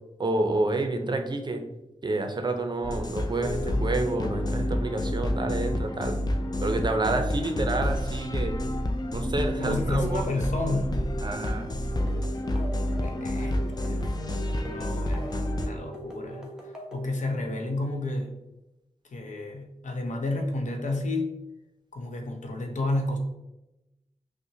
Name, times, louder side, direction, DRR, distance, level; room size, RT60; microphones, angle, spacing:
voice 1, 0.2-1.6 2.0-6.2 6.6-8.5 9.1-10.4 11.2-11.7, right 2 dB, 40° right, 5 dB, 0.5 m, -29 dB
sound 1, 2.8-15.7, left 1 dB, 35° left, 0.4 m, -29 dB
voice 2, 9.6-11.0 13.0-14.1 14.6-18.3 19.1-21.4 21.9-23.2, left 2 dB, 85° left, 3 dB, 0.6 m, -31 dB
sound 2, 11.9-17.1, right 1 dB, 5° right, 0.8 m, -42 dB
5.7 x 2.1 x 2.7 m, 0.95 s
wide cardioid pair, 100°, 12 cm